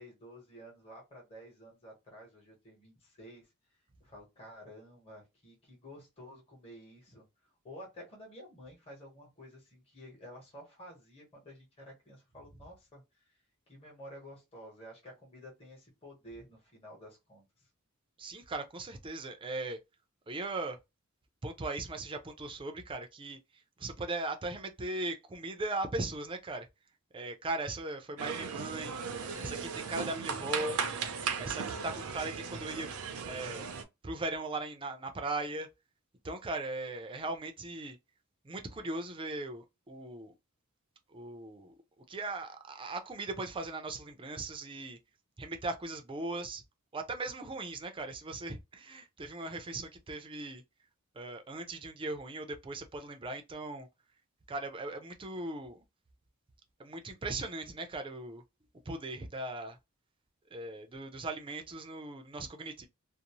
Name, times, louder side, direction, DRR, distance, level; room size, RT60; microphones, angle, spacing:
voice 1, 0.0-3.5 4.0-7.3 7.6-13.0 13.7-17.7, equal, 30° left, 1.1 m, -51 dB
voice 2, 18.2-19.8 20.3-20.8 21.4-23.4 23.8-26.7 27.1-29.0 29.4-30.8 31.4-32.9 33.3-33.7 34.0-35.7 36.2-38.0 38.4-40.3 41.1-41.7 42.1-45.0 45.4-46.6 46.9-50.6 51.2-53.9 54.5-55.8 56.8-58.4 58.9-59.8 60.5-62.9, right 2 dB, 25° right, 0.4 m, -38 dB
sound 1, 28.2-33.8, right 6 dB, 75° right, 0.5 m, -37 dB
2.6 x 2.0 x 2.9 m
head